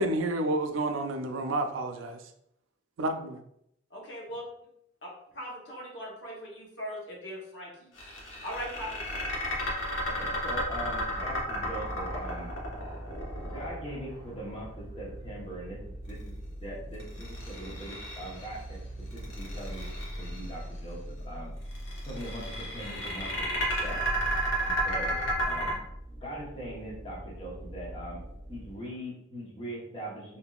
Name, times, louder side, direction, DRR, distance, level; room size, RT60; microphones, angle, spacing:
voice 1, 0.0-2.2 3.0-3.4, right 1 dB, 90° right, 7 dB, 0.4 m, -30 dB
voice 2, 3.9-4.4 5.0-7.9 8.4-9.4, equal, 65° left, -3 dB, 1.0 m, -40 dB
sound 1, 8.0-14.2 17.0-18.6 19.1-20.5 21.7-25.7, equal, 90° left, 1.0 m, -32 dB
voice 3, 10.1-12.5 13.4-18.8 19.1-19.9 20.2-21.5 22.1-23.5 23.8-24.0 24.6-25.2 25.4-25.7 26.2-28.2 28.5-30.4, right 1 dB, 30° left, -5 dB, 1.0 m, -41 dB
sound 2, 10.6-28.8, equal, 30° right, 0.7 m, -42 dB
3.4 x 2.6 x 2.4 m, 0.75 s
head